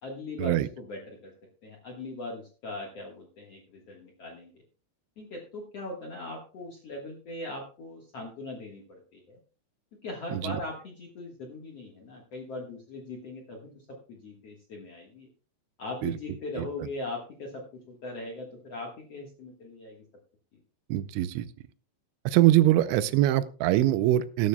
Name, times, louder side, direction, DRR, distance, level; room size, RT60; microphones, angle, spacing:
voice 1, 0.0-1.3 1.6-4.5 5.2-9.4 10.0-15.3 15.8-20.0, left 2 dB, 70° left, -1 dB, 1.5 m, -40 dB
voice 2, 20.9-21.5 22.3-24.5, right 14 dB, 85° right, 14 dB, 3.0 m, -23 dB
18.5 x 9.6 x 2.3 m, 0.38 s
omnidirectional pair, 5.3 m